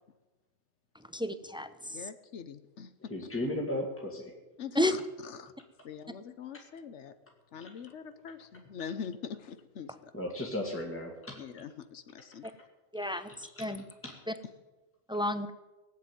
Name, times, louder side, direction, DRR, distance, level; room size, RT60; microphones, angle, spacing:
voice 1, 1.1-2.0 4.7-5.0 12.9-13.8 15.1-15.5, left 1 dB, 5° right, 10 dB, 0.6 m, -31 dB
voice 2, 1.9-3.1 4.6-5.5 5.8-7.1 7.5-10.1 11.4-12.4, left 7 dB, 80° left, 11 dB, 1.2 m, -43 dB
voice 3, 3.1-4.3 10.1-11.4 13.6-13.7 14.0-14.1, left 1 dB, 10° left, -1 dB, 2.0 m, -35 dB
18.5 x 7.7 x 9.3 m, 1.1 s
omnidirectional pair, 1.2 m